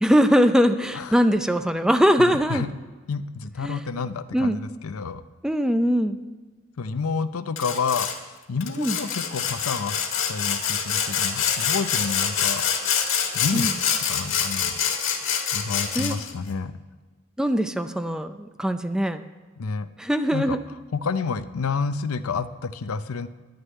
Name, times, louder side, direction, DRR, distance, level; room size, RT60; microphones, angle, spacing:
voice 1, 0.0-2.6 3.6-3.8 4.3-4.6 5.4-6.2 8.8-9.0 13.5-13.7 15.9-16.2 17.4-19.2 20.0-20.6, equal, 5° right, 9 dB, 0.4 m, -21 dB
voice 2, 2.2-2.7 3.1-5.2 6.8-8.1 8.5-10.0 10.3-12.7 13.3-14.7 15.5-16.7 19.6-19.9 20.3-20.6 20.9-23.3, left 5 dB, 90° left, 12 dB, 0.6 m, -29 dB
Sawing, 7.6-8.2 8.6-16.3, left 7 dB, 65° left, 1.6 m, -26 dB
11.0 x 6.7 x 9.1 m, 1.3 s
head